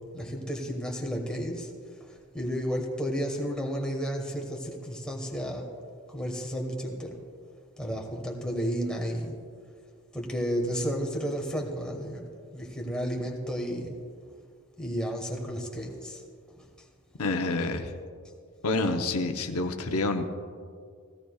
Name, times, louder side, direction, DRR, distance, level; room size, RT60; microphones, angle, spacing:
voice 1, 0.0-1.7 2.0-5.6 6.1-7.2 7.8-9.3 10.1-14.0 14.8-16.2 16.6-16.7, equal, 5° left, 0 dB, 1.4 m, -32 dB
voice 2, 17.2-17.9 18.6-20.3, left 2 dB, 85° left, 5 dB, 0.9 m, -28 dB
16.0 x 16.0 x 2.4 m, 2.2 s
head